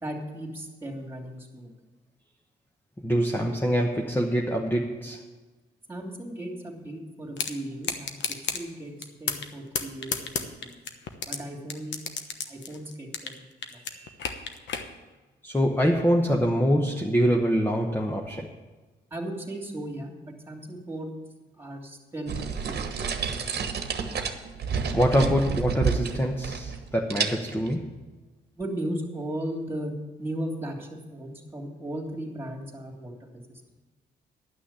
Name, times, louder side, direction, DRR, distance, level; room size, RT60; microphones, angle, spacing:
voice 1, 0.0-1.7 5.9-8.2 8.5-8.9 9.2-10.8 11.2-12.0 12.5-13.4 13.7-13.8 19.1-20.1 20.5-21.1 21.6-23.5 28.6-29.9 30.2-33.4, right 1 dB, 10° right, 2 dB, 2.8 m, -36 dB
voice 2, 3.0-5.3 13.9-14.1 15.4-18.5 24.9-28.0, equal, 10° left, 1 dB, 1.0 m, -25 dB
sound 1, 7.4-7.5 7.8-8.6 9.0-9.5 9.8-11.4 11.7-13.4 13.6-14.9, left 6 dB, 65° left, 1.1 m, -30 dB
sound 2, 22.3-26.8 27.1-27.7, right 6 dB, 55° right, 1.3 m, -30 dB
11.5 x 6.2 x 8.9 m, 1.2 s
cardioid pair, 90°, 20 cm